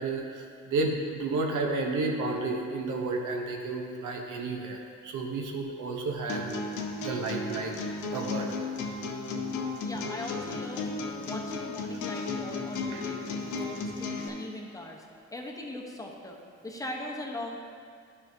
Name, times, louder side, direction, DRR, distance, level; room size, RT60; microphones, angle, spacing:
voice 1, 0.0-6.5 7.0-7.7 8.1-8.5 12.9-13.0, right 3 dB, 80° right, 1 dB, 0.9 m, -31 dB
sound 1, 6.3-14.3, left 3 dB, 85° left, 0.8 m, -34 dB
voice 2, 9.8-10.9 11.2-13.2 13.5-15.0 15.3-17.6, left 1 dB, 10° left, 0 dB, 0.9 m, -39 dB
10.5 x 5.7 x 2.7 m, 2.3 s
cardioid pair, 90°, 30 cm